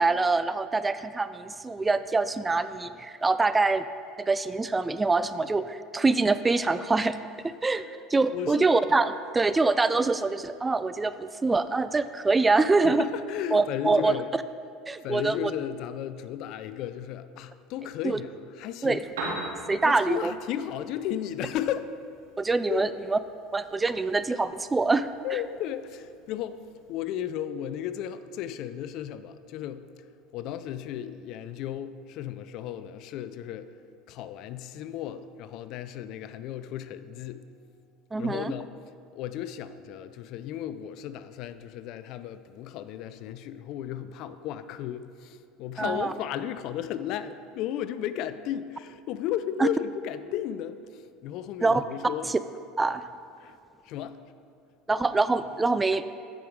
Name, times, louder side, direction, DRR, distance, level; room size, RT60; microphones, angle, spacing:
voice 1, 0.0-3.8 4.2-7.2 7.4-7.8 8.1-13.1 13.5-14.1 14.9-15.5 18.0-18.2 18.8-19.0 19.7-20.3 22.4-23.2 23.5-25.4 38.1-38.5 45.8-46.1 49.6-49.7 51.6-51.8 52.2-52.4 52.8-53.1 54.9-56.0, right 3 dB, 15° right, 13 dB, 0.3 m, -25 dB
voice 2, 8.3-8.7 12.8-14.3 15.0-18.3 18.6-19.0 19.7-21.9 22.7-22.9 25.2-26.6 26.9-29.8 30.3-33.7 34.1-37.4 38.2-38.7 39.1-50.8 51.2-52.3 53.4-53.5 53.9-54.2, left 10 dB, 60° left, 13 dB, 0.4 m, -34 dB
Piano, 18.9-26.9, right 2 dB, 85° right, 2.1 m, -43 dB
9.5 x 5.2 x 4.7 m, 2.4 s
supercardioid pair, 95°, 0 cm